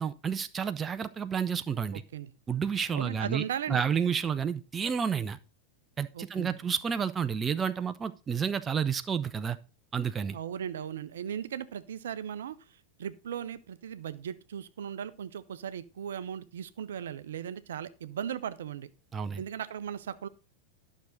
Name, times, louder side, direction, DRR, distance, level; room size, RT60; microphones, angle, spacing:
voice 1, 0.0-2.0 2.5-3.4 3.7-5.4 6.0-9.6 9.9-10.4 19.1-19.4, right 7 dB, 20° right, 0.5 m, -30 dB
voice 2, 1.9-2.3 2.9-3.8 6.1-6.6 10.3-12.6 13.0-18.9 19.4-20.3, right 9 dB, 60° right, 0.6 m, -37 dB
11.5 x 6.2 x 4.0 m
figure-of-eight pair, 90°, 0 cm